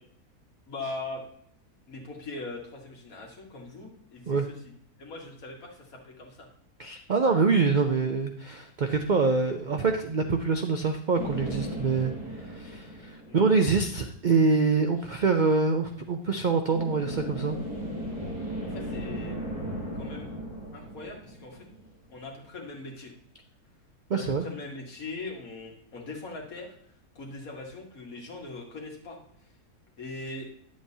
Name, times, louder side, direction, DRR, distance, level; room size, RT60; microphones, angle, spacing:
voice 1, 0.7-1.2 1.9-4.4 5.0-6.5 13.2-13.4 18.6-19.4 19.9-20.4 20.7-21.6 22.1-23.1 24.1-26.7 27.2-29.2 30.0-30.5, left 2 dB, 65° left, 0 dB, 2.1 m, -40 dB
voice 2, 6.8-17.6 24.1-24.5, right 4 dB, 85° right, 5 dB, 0.4 m, -25 dB
sound 1, 11.1-13.9 16.7-22.1, equal, 25° right, 3.7 m, -36 dB
10.0 x 7.6 x 2.8 m, 0.65 s
omnidirectional pair, 1.6 m